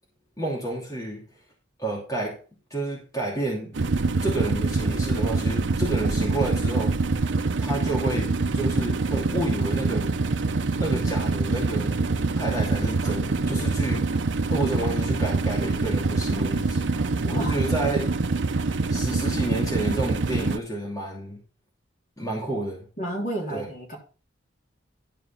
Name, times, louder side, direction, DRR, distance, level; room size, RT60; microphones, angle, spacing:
voice 1, 0.4-1.3 1.8-2.4 2.7-3.8 4.2-6.9 7.6-10.1 10.8-12.1 12.4-14.2 14.5-16.9 17.2-18.2 18.9-21.4 22.2-22.9 23.5-23.6, right 1 dB, 20° left, -3 dB, 2.7 m, -30 dB
sound 1, 3.7-20.6, right 3 dB, 70° right, 0.7 m, -25 dB
voice 2, 23.0-24.0, right 1 dB, 40° left, -1 dB, 3.2 m, -31 dB
12.0 x 4.9 x 5.7 m, 0.37 s
head